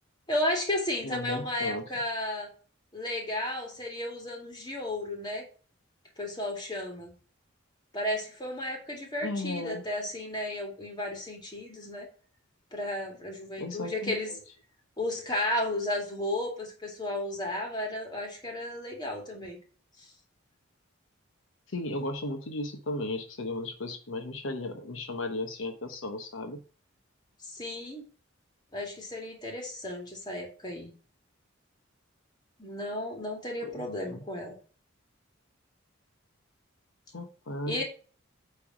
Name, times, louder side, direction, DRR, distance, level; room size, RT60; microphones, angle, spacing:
voice 1, 0.3-2.5 2.9-5.4 6.2-7.1 7.9-12.1 12.7-14.3 15.0-19.6 27.4-28.0 28.7-30.9 32.6-34.5 37.7-37.8, left 1 dB, 20° left, 1 dB, 2.4 m, -33 dB
voice 2, 1.0-1.8 9.2-9.8 13.6-14.4 21.7-26.6 33.6-34.2 37.1-37.8, left 2 dB, 75° left, 5 dB, 1.0 m, -35 dB
8.7 x 3.5 x 5.9 m, 0.39 s
head